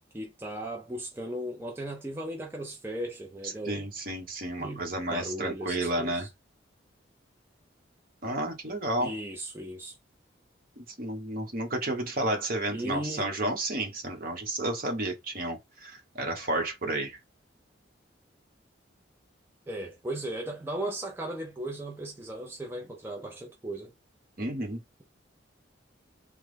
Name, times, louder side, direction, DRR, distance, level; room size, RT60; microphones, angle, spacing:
voice 1, 0.1-3.9 4.6-4.8 5.1-6.3 9.0-10.0 12.7-13.3 19.7-23.9, right 1 dB, 10° right, 0.4 m, -36 dB
voice 2, 3.6-6.3 8.2-9.1 10.8-17.2 24.4-24.8, right 1 dB, 50° right, 1.1 m, -31 dB
3.3 x 2.0 x 3.3 m
head